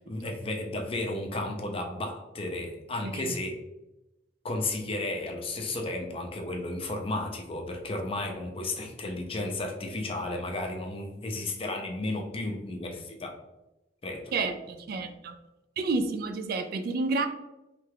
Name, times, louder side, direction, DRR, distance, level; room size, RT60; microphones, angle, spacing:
voice 1, 0.0-3.5 4.4-13.3 14.0-14.2, left 2 dB, 30° left, 2 dB, 0.5 m, -33 dB
voice 2, 3.0-3.3 14.3-15.3 15.8-17.3, right 3 dB, 55° right, 8 dB, 0.3 m, -30 dB
3.2 x 2.3 x 3.3 m, 0.97 s
head